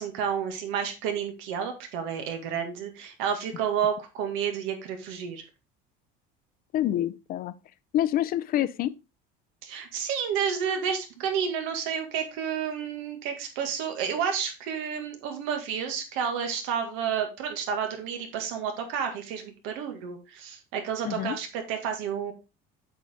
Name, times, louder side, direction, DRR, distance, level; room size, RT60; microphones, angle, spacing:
voice 1, 0.0-5.4 9.6-22.3, right 7 dB, 80° right, 2.0 m, -30 dB
voice 2, 6.7-7.5 7.9-8.9 21.0-21.4, left 12 dB, 45° left, 0.6 m, -27 dB
7.9 x 5.0 x 3.6 m
cardioid pair, 135°, 21 cm